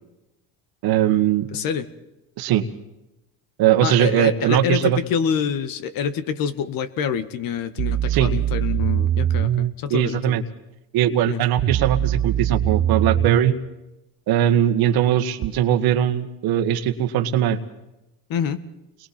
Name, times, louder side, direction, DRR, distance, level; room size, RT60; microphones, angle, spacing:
voice 1, 0.8-1.5 2.4-2.6 3.6-5.0 8.1-8.3 9.9-10.4 10.9-13.6 14.3-17.6, right 10 dB, 65° right, 10 dB, 1.7 m, -20 dB
voice 2, 1.5-1.9 3.8-10.4 11.3-11.4 18.3-18.6, left 7 dB, 55° left, 12 dB, 1.7 m, -26 dB
sound 1, 7.8-9.7 11.6-13.6 15.4-15.5, right 11 dB, 40° right, 0.7 m, -22 dB
29.0 x 22.5 x 4.4 m, 0.93 s
supercardioid pair, 85°, 40 cm